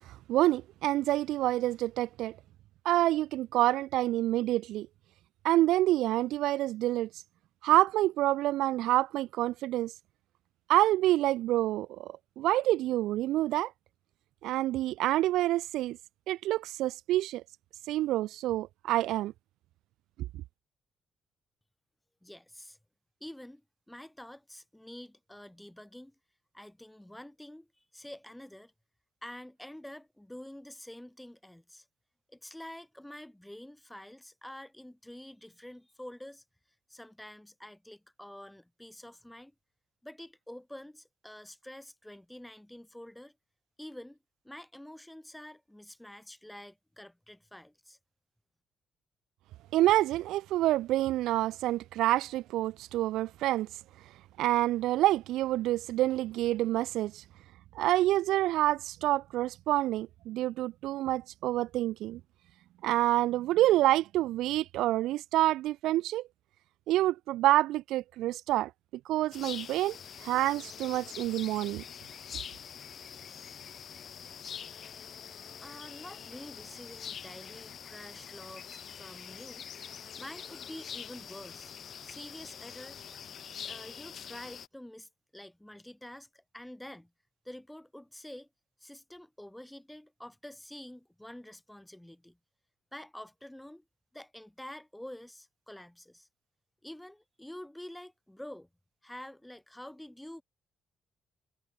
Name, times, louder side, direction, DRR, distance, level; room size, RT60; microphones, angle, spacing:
voice 1, 0.3-2.4 2.8-4.9 5.4-7.1 7.6-9.9 10.7-13.7 14.4-16.0 16.3-17.4 17.9-19.3 49.7-53.7 54.4-57.2 57.7-62.2 62.8-66.3 66.9-68.7 69.1-71.8, right 15 dB, 90° right, 0.5 m, -27 dB
voice 2, 22.2-22.8 23.2-23.6 23.9-26.1 26.5-28.7 29.2-31.9 32.3-36.4 36.9-39.5 40.0-43.3 43.8-44.2 44.4-48.0 75.6-79.7 80.2-81.7 82.0-83.0 83.6-87.1 87.4-88.5 88.8-92.4 92.9-93.8 94.1-96.3 96.8-98.7 99.0-100.4, left 1 dB, 5° left, 4.6 m, -47 dB
sound 1, 69.3-84.7, left 8 dB, 55° left, 3.5 m, -45 dB
cardioid pair, 90°, 0 cm